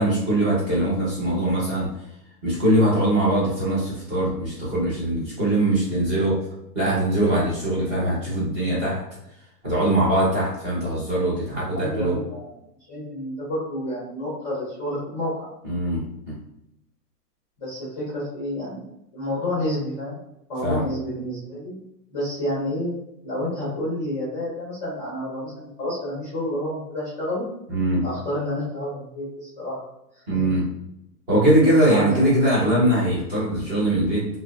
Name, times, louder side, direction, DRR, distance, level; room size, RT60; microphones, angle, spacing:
voice 1, 0.0-1.9 2.4-6.4 6.7-9.0 9.6-12.2 15.6-16.4 20.6-20.8 27.7-28.0 30.3-30.6 31.3-34.3, right 1 dB, 20° right, -8 dB, 0.7 m, -21 dB
voice 2, 11.7-12.5 12.9-15.5 17.6-20.2 20.5-21.8 22.1-22.9 23.2-27.5 28.0-29.8 30.3-30.4 31.8-32.3, left 1 dB, 20° left, -7 dB, 0.6 m, -29 dB
2.9 x 2.0 x 2.3 m, 0.83 s
hypercardioid pair, 150°, 50 cm